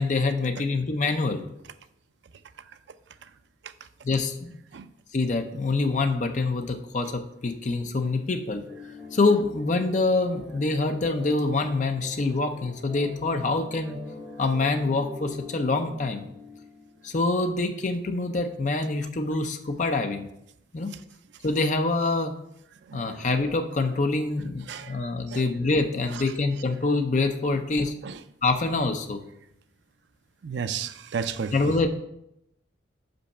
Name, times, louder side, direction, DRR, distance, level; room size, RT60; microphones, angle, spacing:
voice 1, 0.0-1.4 4.0-4.6 5.1-8.6 9.1-14.0 14.4-16.2 17.0-20.3 20.7-20.9 21.4-22.3 22.9-27.9 28.4-29.2 31.5-31.9, left 3 dB, 40° left, 6 dB, 0.6 m, -25 dB
sound 1, 8.6-17.4, left 2 dB, 15° left, 1.8 m, -44 dB
voice 2, 22.9-23.3 24.7-25.0 25.3-25.5 26.1-26.2 27.8-28.2 30.4-31.7, right 6 dB, 75° right, 11 dB, 0.4 m, -34 dB
5.6 x 5.3 x 5.5 m, 0.79 s
head